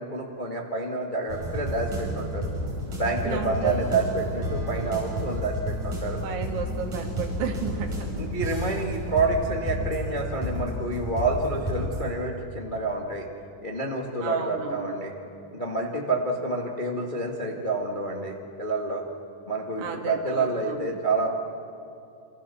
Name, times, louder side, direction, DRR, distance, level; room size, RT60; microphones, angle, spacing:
voice 1, 0.0-2.5 2.9-6.2 8.2-13.3 13.6-15.1 15.5-19.0 19.5-21.3, right 3 dB, 65° left, 0 dB, 0.4 m, -28 dB
sound 1, 1.3-12.0, equal, 45° right, 7.3 m, -31 dB
voice 2, 3.2-3.8 6.2-8.1 14.2-15.0 19.8-21.0, right 6 dB, 75° right, 1 dB, 4.5 m, -33 dB
29.0 x 26.0 x 7.1 m, 2.7 s
omnidirectional pair, 4.8 m